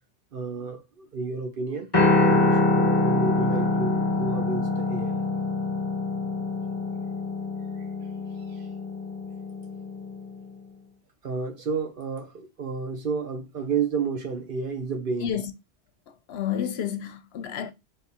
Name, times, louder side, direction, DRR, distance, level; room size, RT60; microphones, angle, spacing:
voice 1, 0.3-1.9 2.2-5.2 8.5-8.7 11.2-15.4, right 5 dB, 55° right, 1.0 m, -31 dB
Piano, 1.9-10.2, left 2 dB, 20° left, 1.5 m, -25 dB
voice 2, 16.3-17.7, left 9 dB, 70° left, 0.8 m, -30 dB
3.5 x 3.3 x 4.2 m
omnidirectional pair, 1.2 m